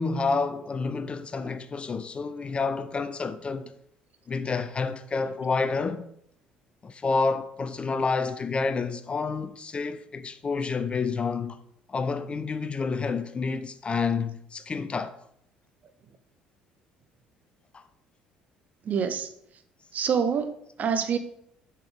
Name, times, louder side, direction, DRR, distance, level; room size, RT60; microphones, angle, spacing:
voice 1, 0.0-3.7 4.3-6.0 6.8-11.6 11.9-15.2 17.7-17.8, left 4 dB, 25° left, 0.4 m, -29 dB
voice 2, 18.8-19.3 19.9-21.2, right 6 dB, 40° right, 0.7 m, -26 dB
6.9 x 5.8 x 3.5 m
figure-of-eight pair, 55°, 4 cm